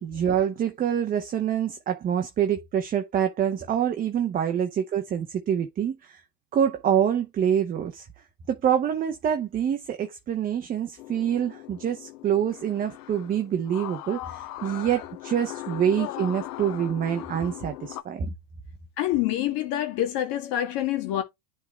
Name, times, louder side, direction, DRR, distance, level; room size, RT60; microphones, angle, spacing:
voice 1, 0.0-6.2 6.5-8.1 8.5-18.3, right 9 dB, 20° right, 0.7 m, -26 dB
sound 1, 11.0-18.0, left 16 dB, 65° left, 0.9 m, -39 dB
voice 2, 19.0-21.2, left 12 dB, 45° left, 2.0 m, -26 dB
10.5 x 3.8 x 3.3 m
hypercardioid pair, 120°, 49 cm